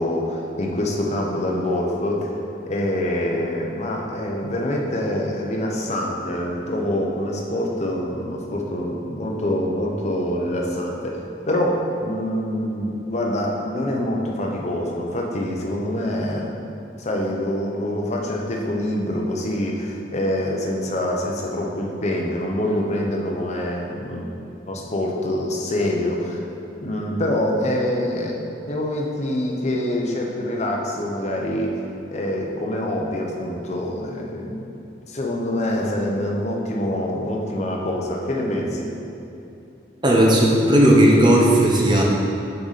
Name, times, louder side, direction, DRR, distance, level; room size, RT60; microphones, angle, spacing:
voice 1, 0.0-2.3 2.7-16.6 17.0-24.3 24.7-26.5 26.8-31.7 32.1-34.7 35.1-38.9, left 1 dB, 40° left, -1 dB, 0.8 m, -25 dB
voice 2, 40.0-42.0, right 1 dB, 25° right, -2 dB, 0.8 m, -15 dB
6.8 x 5.0 x 4.1 m, 2.8 s
head